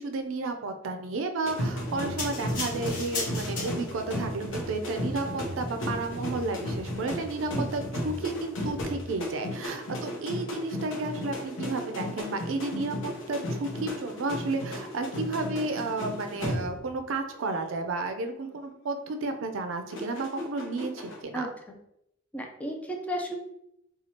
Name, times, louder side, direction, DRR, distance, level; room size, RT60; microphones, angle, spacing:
voice 1, 0.0-21.5, right 3 dB, 80° right, 7 dB, 0.4 m, -32 dB
sound 1, 1.4-17.0 17.3-17.7 19.9-21.2, equal, 75° left, 0.7 m, -34 dB
sound 2, 2.2-4.1 4.8-4.9, left 3 dB, 45° left, 1.2 m, -35 dB
voice 2, 21.3-21.8 22.3-23.4, equal, 5° left, 1 dB, 0.4 m, -34 dB
4.2 x 2.3 x 2.9 m, 0.79 s
head